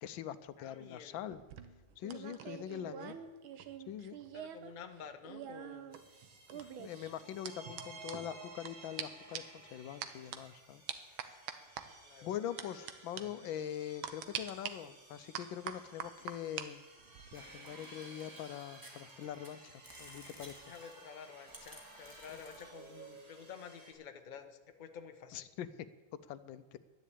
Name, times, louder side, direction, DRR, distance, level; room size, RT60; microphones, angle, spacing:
voice 1, 0.0-1.4 2.0-3.1 3.9-4.2 6.5-10.8 11.2-11.4 12.2-16.8 17.3-20.7 22.3-22.4 25.3-25.7 26.3-26.8, left 10 dB, 80° left, 14 dB, 1.4 m, -43 dB
voice 2, 0.6-1.2 2.6-3.2 4.3-6.0 7.4-7.5 12.0-12.3 13.1-13.5 20.7-25.5, left 7 dB, 35° left, 7 dB, 0.8 m, -51 dB
sound 1, 1.3-4.7 5.0-8.7 9.0-9.1 9.3-9.6 10.0-10.4 10.9-11.8 12.6-12.9 13.2-13.3 14.0-14.7 15.3-16.7 17.0-17.4, right 9 dB, 85° right, 1.8 m, -44 dB
sound 2, 5.9-23.9, right 2 dB, 65° right, 3.6 m, -56 dB
sound 3, 17.3-19.5 19.8-23.7, right 1 dB, 10° right, 1.9 m, -55 dB
12.0 x 10.5 x 8.4 m, 1.2 s
omnidirectional pair, 2.2 m